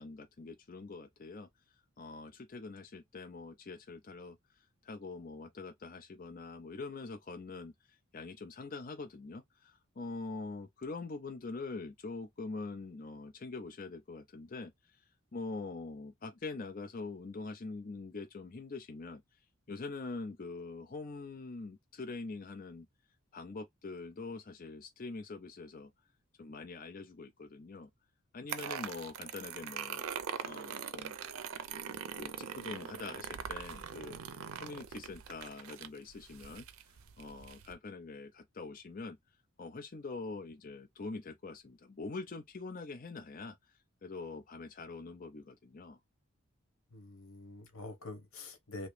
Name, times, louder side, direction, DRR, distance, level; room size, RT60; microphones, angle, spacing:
voice 1, 0.0-1.5 2.0-15.0 15.3-19.2 19.7-22.9 23.3-25.9 26.4-27.9 28.3-30.0 30.4-31.1 32.2-34.2 34.5-36.7 37.2-39.2 39.6-46.0, left 3 dB, 40° left, 0.5 m, -44 dB
sound 1, 28.5-37.7, right 7 dB, 85° right, 0.5 m, -42 dB
voice 2, 46.9-48.9, left 2 dB, 85° left, 1.1 m, -46 dB
3.0 x 2.8 x 3.2 m
head